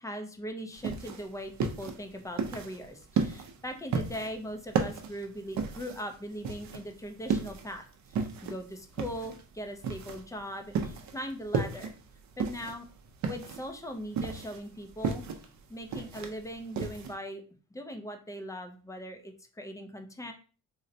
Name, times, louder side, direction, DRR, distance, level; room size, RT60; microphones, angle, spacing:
voice 1, 0.0-11.9 12.4-12.9 13.2-15.2 15.7-17.4 17.7-20.3, equal, 10° left, 5 dB, 0.4 m, -40 dB
sound 1, 0.7-17.1, right 5 dB, 50° right, 0.5 m, -34 dB
3.8 x 2.1 x 2.6 m, 0.37 s
cardioid pair, 115°, 35 cm